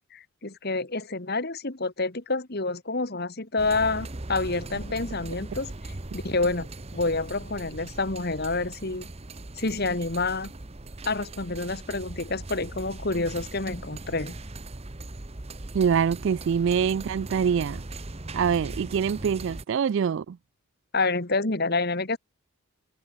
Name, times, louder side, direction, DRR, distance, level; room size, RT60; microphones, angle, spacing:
voice 1, 0.1-9.1 9.6-10.5 11.1-14.4 20.9-22.2, left 3 dB, 45° left, 1.8 m, -28 dB
sound 1, 3.6-19.6, right 2 dB, 30° right, 1.0 m, -39 dB
voice 2, 15.7-17.8 18.3-20.4, right 7 dB, 55° right, 0.3 m, -24 dB
open air
head